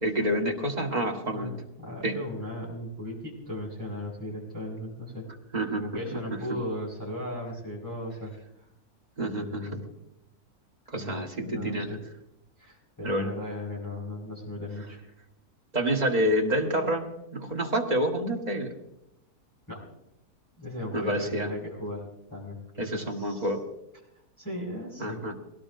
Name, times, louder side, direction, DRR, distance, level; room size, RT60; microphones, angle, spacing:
voice 1, 0.0-1.5 2.0-2.1 5.5-5.9 9.2-9.8 10.9-11.9 13.0-13.3 15.7-18.7 20.9-21.5 22.8-23.6 25.0-25.4, right 1 dB, 25° right, 1 dB, 1.7 m, -28 dB
voice 2, 1.3-5.3 5.8-8.3 9.2-9.8 11.0-12.0 12.6-15.0 19.7-19.8 20.6-22.0 22.3-23.5 24.4-25.2, left 1 dB, 10° left, -7 dB, 5.3 m, -37 dB
22.5 x 17.5 x 2.7 m, 0.83 s
omnidirectional pair, 1.6 m